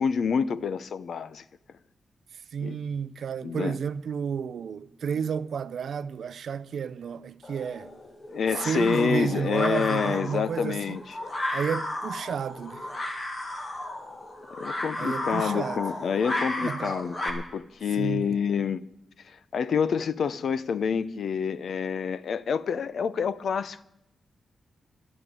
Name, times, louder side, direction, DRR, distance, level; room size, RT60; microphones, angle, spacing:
voice 1, 0.0-1.4 2.6-2.8 3.4-3.8 8.3-11.0 14.6-18.8 19.5-23.8, left 6 dB, 55° left, 0.6 m, -27 dB
voice 2, 2.3-8.0 8.5-11.0 11.5-12.9 15.0-15.9 16.6-16.9 18.0-18.4, right 7 dB, 60° right, 0.5 m, -31 dB
sound 1, 7.4-17.3, left 1 dB, 25° left, 1.8 m, -34 dB
12.0 x 9.1 x 9.5 m
wide cardioid pair, 180°, 0 cm